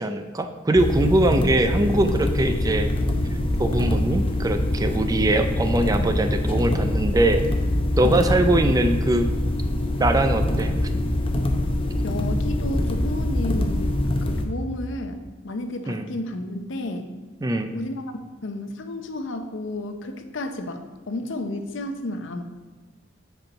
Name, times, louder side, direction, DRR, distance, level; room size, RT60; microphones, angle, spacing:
voice 1, 0.0-2.9 3.6-7.4 8.0-9.3 10.0-10.7 15.9-16.0 17.4-17.7, right 1 dB, 20° right, 7 dB, 0.4 m, -22 dB
sound 1, 0.8-14.5, left 1 dB, 30° left, 0.7 m, -24 dB
voice 2, 12.0-17.1 17.7-18.1 18.4-22.4, left 1 dB, 65° left, 7 dB, 0.7 m, -32 dB
7.9 x 4.5 x 5.4 m, 1.3 s
head